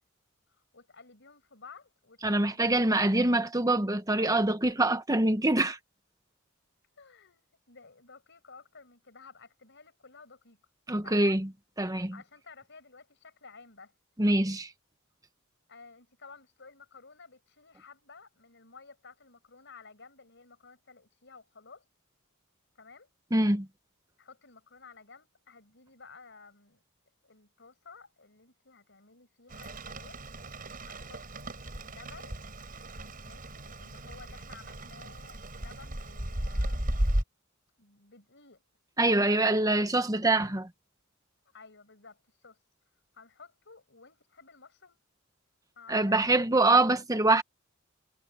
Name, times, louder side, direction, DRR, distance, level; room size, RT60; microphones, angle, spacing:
voice 1, 0.5-3.0 7.0-10.6 10.9-11.4 12.1-13.9 15.7-21.8 22.8-23.1 24.2-26.8 27.2-30.2 30.9-32.4 33.2-37.1 37.8-38.6 39.4-39.7 41.5-42.6 43.1-45.0 45.7-47.0, left 4 dB, 60° left, 6.6 m, -54 dB
voice 2, 2.2-5.8 10.9-11.5 11.8-12.1 14.2-14.7 23.3-23.7 39.0-40.7 45.9-47.4, right 2 dB, 15° right, 1.3 m, -24 dB
Rain, 29.5-37.2, right 1 dB, 45° right, 5.1 m, -35 dB
head